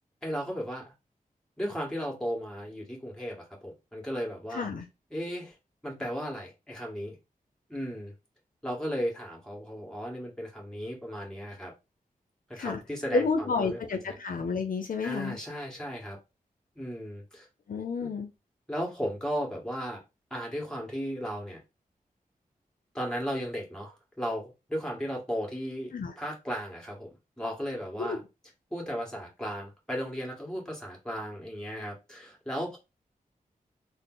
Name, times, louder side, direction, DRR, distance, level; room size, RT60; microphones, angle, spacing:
voice 1, 0.2-0.8 1.6-4.7 5.1-5.6 5.8-7.2 7.7-8.1 8.6-11.7 12.5-13.8 14.0-14.2 15.0-16.2 16.8-17.5 18.0-18.1 18.7-20.0 20.3-21.6 22.9-27.1 27.4-28.2 28.7-32.8, equal, 5° left, 1.7 m, -35 dB
voice 2, 4.5-4.9 12.6-12.8 13.1-15.4 17.7-18.3 25.9-26.1 28.0-28.2, left 4 dB, 70° left, 0.6 m, -30 dB
3.7 x 2.0 x 3.9 m
cardioid pair, 60°, 15 cm